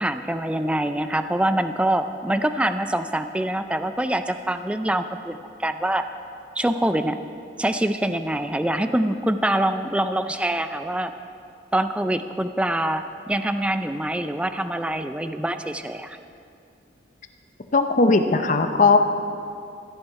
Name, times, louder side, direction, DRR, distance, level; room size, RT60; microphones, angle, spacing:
voice 1, 0.0-6.1 6.6-7.2 7.6-11.1 11.7-16.2, right 1 dB, 5° right, 9 dB, 0.3 m, -25 dB
voice 2, 17.7-19.0, left 3 dB, 45° left, 6 dB, 0.7 m, -18 dB
15.5 x 10.5 x 4.7 m, 2.5 s
head